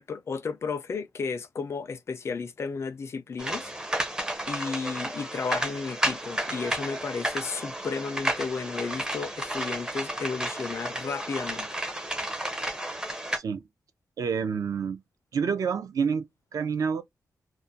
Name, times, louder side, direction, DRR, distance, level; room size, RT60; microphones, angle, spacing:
voice 1, 0.0-3.7 4.5-11.7, left 5 dB, 45° left, 0.4 m, -33 dB
sound 1, 3.4-13.4, right 1 dB, 10° right, 0.5 m, -32 dB
voice 2, 13.3-13.6 14.2-15.0 15.3-17.0, right 6 dB, 65° right, 0.5 m, -28 dB
2.4 x 2.1 x 2.6 m
wide cardioid pair, 120°, 6 cm